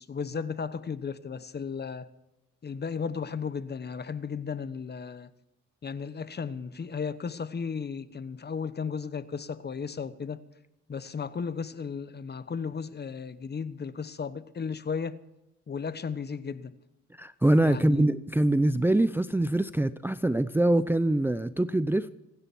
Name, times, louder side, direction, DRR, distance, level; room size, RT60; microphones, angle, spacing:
voice 1, 0.0-2.1 2.6-5.3 5.8-10.4 10.9-15.2 15.7-16.8 17.6-18.0, left 6 dB, 35° left, 1.0 m, -35 dB
voice 2, 17.1-22.1, right 1 dB, 5° right, 0.6 m, -24 dB
26.5 x 10.0 x 4.6 m
cardioid pair, 90°, 30 cm